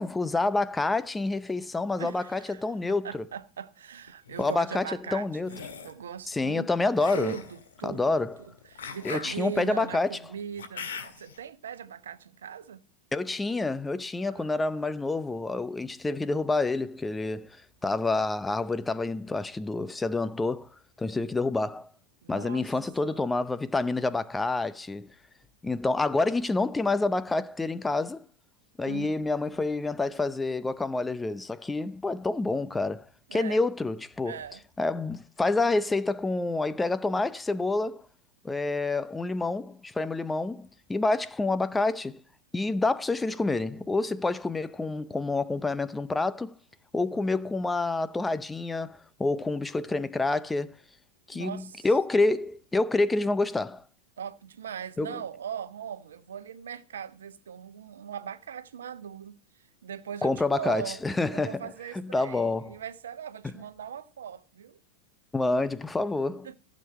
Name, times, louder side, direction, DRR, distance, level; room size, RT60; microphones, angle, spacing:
voice 1, 0.0-3.2 4.4-5.6 6.3-7.4 7.8-8.4 9.0-10.2 13.1-17.6 17.8-20.7 21.0-21.9 22.3-25.1 25.6-28.2 28.8-33.1 33.3-34.4 34.8-38.0 38.4-42.2 42.5-46.5 46.9-50.7 51.3-53.8 55.0-55.2 60.2-61.6 61.9-62.8 63.4-63.5 65.3-66.5, left 3 dB, 10° left, 0.6 m, -28 dB
voice 2, 2.0-2.6 3.0-6.7 7.1-12.8 14.2-14.8 22.2-22.7 23.0-23.3 28.8-29.3 33.3-33.6 34.2-34.6 51.3-51.9 54.2-64.8 66.4-66.5, right 8 dB, 65° right, 1.0 m, -40 dB
sound 1, 4.1-4.5 5.4-6.0 7.0-11.4, left 6 dB, 65° left, 1.8 m, -42 dB
15.5 x 7.4 x 4.4 m
figure-of-eight pair, 90°, 0 cm